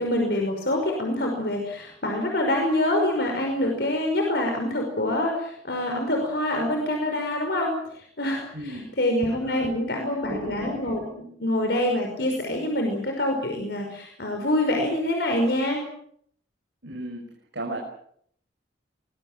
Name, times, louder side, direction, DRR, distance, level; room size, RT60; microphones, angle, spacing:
voice 1, 0.0-11.1 11.4-15.8, left 1 dB, 60° left, 2 dB, 5.5 m, -26 dB
voice 2, 8.5-8.9 9.3-9.7 10.3-11.1 16.8-17.8, right 1 dB, 75° right, 0 dB, 5.8 m, -35 dB
24.0 x 21.5 x 7.5 m, 0.67 s
head